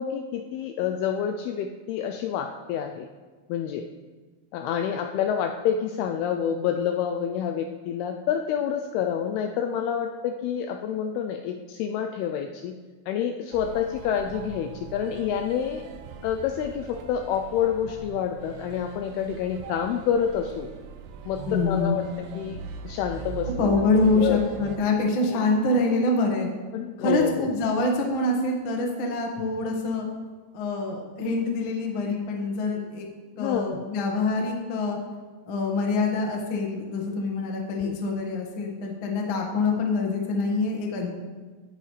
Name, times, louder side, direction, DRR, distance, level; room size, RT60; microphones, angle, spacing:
voice 1, 0.0-3.1 3.5-3.9 4.5-12.8 13.1-15.8 16.2-20.7 21.3-23.8 24.2-24.4 26.7-27.6 33.4-33.9 37.8-38.0, left 8 dB, 80° left, 6 dB, 2.3 m, -28 dB
sound 1, 13.5-24.8, right 7 dB, 80° right, 2.2 m, -41 dB
voice 2, 21.5-22.0 23.6-26.5 27.0-30.1 30.5-33.0 33.4-35.0 35.5-41.2, left 3 dB, 60° left, 0 dB, 1.3 m, -25 dB
17.0 x 9.3 x 3.3 m, 1.4 s
omnidirectional pair, 5.0 m